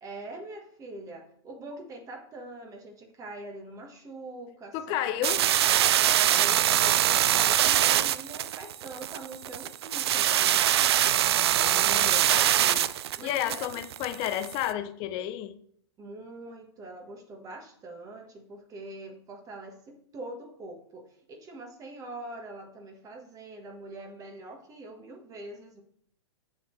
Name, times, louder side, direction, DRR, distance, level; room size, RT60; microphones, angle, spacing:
voice 1, 0.0-5.3 6.0-10.6 13.1-13.8 16.0-25.8, right 2 dB, 25° right, 1.3 m, -43 dB
voice 2, 4.7-5.4 11.5-12.9 13.2-15.6, left 12 dB, 35° left, 0.6 m, -32 dB
sound 1, 5.2-14.6, right 11 dB, 65° right, 0.4 m, -23 dB
7.0 x 7.0 x 3.2 m
hypercardioid pair, 115°, 14 cm